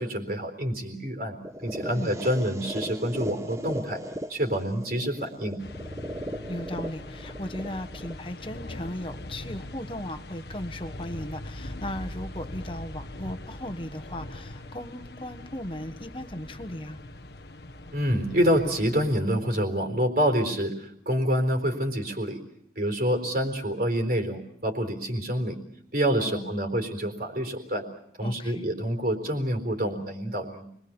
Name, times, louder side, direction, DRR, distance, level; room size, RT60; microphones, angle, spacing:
voice 1, 0.0-1.4 1.6-4.0 4.3-5.6 17.9-22.4 22.8-25.6 25.9-27.8 28.2-30.7, equal, 55° right, 4 dB, 4.0 m, -27 dB
sound 1, 1.4-9.4, equal, 15° right, 1.0 m, -38 dB
voice 2, 1.8-2.1 6.5-17.0 26.2-26.5 28.2-28.6, left 1 dB, 30° left, 9 dB, 1.4 m, -37 dB
sound 2, 5.6-19.2, left 1 dB, 70° left, 1.4 m, -41 dB
29.5 x 21.5 x 7.1 m, 0.70 s
head